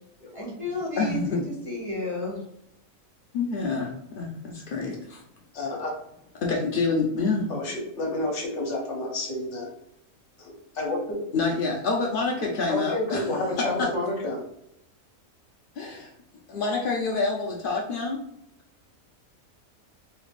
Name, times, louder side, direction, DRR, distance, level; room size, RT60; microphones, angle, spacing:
voice 1, 0.3-2.4, left 1 dB, 30° right, -6 dB, 0.8 m, -32 dB
voice 2, 1.0-1.4 3.3-5.2 6.4-7.5 11.3-13.3 13.8-13.9 15.8-16.1 16.5-18.2, left 4 dB, 85° left, -1 dB, 0.4 m, -27 dB
voice 3, 5.5-5.9 7.5-9.7 10.4-11.0 12.7-14.4, left 2 dB, 60° left, 0 dB, 1.0 m, -30 dB
3.3 x 3.2 x 2.4 m, 0.80 s
omnidirectional pair, 1.5 m